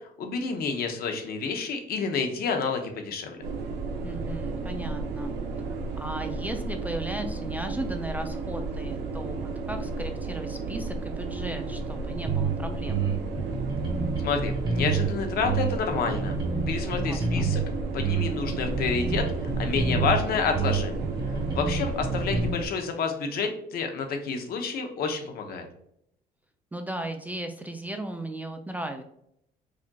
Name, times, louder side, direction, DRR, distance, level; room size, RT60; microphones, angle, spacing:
voice 1, 0.2-3.4 14.2-16.3 16.7-17.6 17.9-20.9 21.3-25.7, left 5 dB, 65° left, 5 dB, 0.7 m, -29 dB
sound 1, 3.4-22.7, right 3 dB, 80° right, 0.6 m, -33 dB
voice 2, 4.0-5.4 6.0-13.0 16.9-17.6 21.4-21.8 26.7-29.0, right 1 dB, 10° right, 5 dB, 0.3 m, -36 dB
sound 2, 12.3-12.5 12.9-15.1 15.4-17.6 18.0-20.2 20.5-22.5, right 4 dB, 25° right, 1.2 m, -28 dB
4.9 x 2.7 x 2.2 m, 0.74 s
cardioid pair, 110°, 17 cm